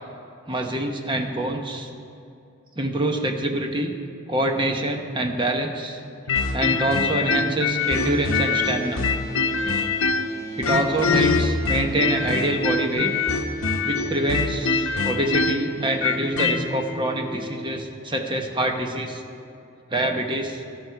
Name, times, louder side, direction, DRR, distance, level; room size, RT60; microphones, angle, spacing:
voice 1, 0.5-1.9 2.8-3.9 4.3-6.0 6.5-9.0 10.6-13.1 13.8-19.2 19.9-20.6, right 1 dB, 25° right, 4 dB, 0.9 m, -25 dB
sound 1, 6.3-10.3 10.6-16.6, left 4 dB, 75° left, 0.9 m, -23 dB
sound 2, 7.8-17.8, equal, 15° left, 1.0 m, -36 dB
12.5 x 11.0 x 4.7 m, 2.7 s
head